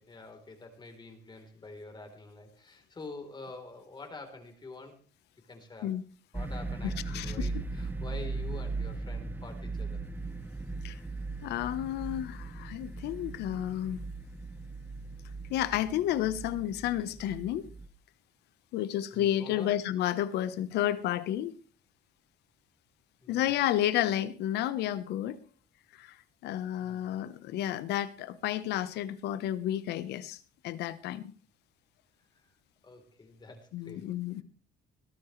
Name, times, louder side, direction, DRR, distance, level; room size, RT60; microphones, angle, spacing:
voice 1, 0.0-5.0 5.5-5.9 6.3-10.0 19.1-19.7 23.2-23.4 26.8-27.1 32.3-32.4 32.8-34.1, left 3 dB, 25° left, 3.8 m, -47 dB
sound 1, 6.3-17.9, right 3 dB, 10° right, 1.1 m, -38 dB
voice 2, 6.8-7.5 10.8-11.0 11.4-14.0 15.5-17.7 18.7-21.6 23.3-25.4 25.9-26.2 26.4-30.4 30.6-31.3 33.7-34.4, left 12 dB, 80° left, 1.1 m, -31 dB
20.5 x 13.0 x 3.3 m
cardioid pair, 110°, 17 cm